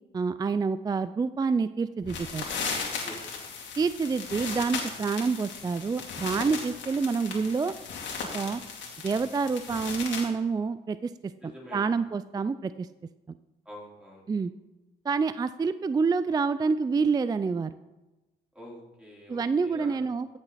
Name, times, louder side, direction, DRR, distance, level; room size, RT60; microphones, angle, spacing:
voice 1, 0.1-2.5 3.8-7.7 8.3-8.6 9.0-12.9 13.3-13.4 14.3-14.5 15.0-17.7 19.3-20.3, right 4 dB, 20° right, 13 dB, 0.3 m, -27 dB
sound 1, 2.0-10.3, left 5 dB, 70° left, 2.5 m, -36 dB
voice 2, 11.4-11.9 13.7-14.2 18.5-20.0, left 1 dB, 5° right, -4 dB, 4.0 m, -46 dB
14.5 x 6.8 x 4.1 m, 1.1 s
cardioid pair, 90°, 20 cm